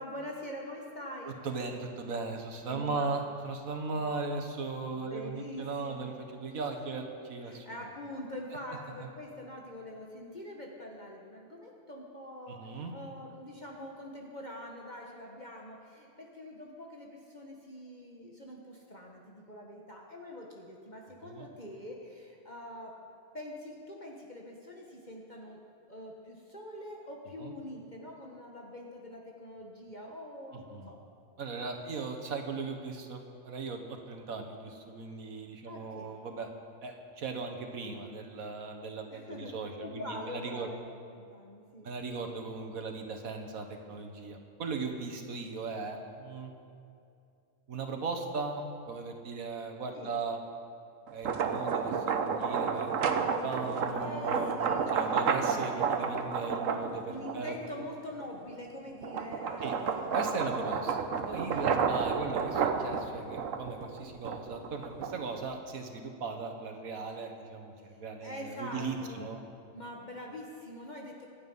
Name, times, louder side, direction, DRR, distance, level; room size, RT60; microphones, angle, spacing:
voice 1, 0.0-1.3 2.7-3.2 3.9-4.0 4.9-6.1 6.9-7.1 7.5-22.9 23.3-25.6 25.9-31.0 31.4-31.5 31.8-32.0 35.6-36.1 39.1-40.8 41.2-41.9 43.9-44.0 49.9-50.1 53.7-55.3 57.1-60.6 61.6-61.8 67.9-69.3 69.7-71.3, left 1 dB, 35° left, -1 dB, 1.4 m, -44 dB
voice 2, 1.3-7.7 9.0-9.1 12.5-12.9 21.2-21.5 27.4-27.5 30.5-30.9 31.4-36.5 36.8-40.7 41.8-46.5 47.7-50.4 51.1-57.5 59.6-59.8 60.1-61.0 61.3-69.4, right 4 dB, 90° right, 4 dB, 1.8 m, -38 dB
sound 1, 51.1-57.7 58.2-65.4, right 6 dB, 70° right, 1.3 m, -31 dB
24.5 x 8.8 x 5.5 m, 2.5 s
omnidirectional pair, 1.4 m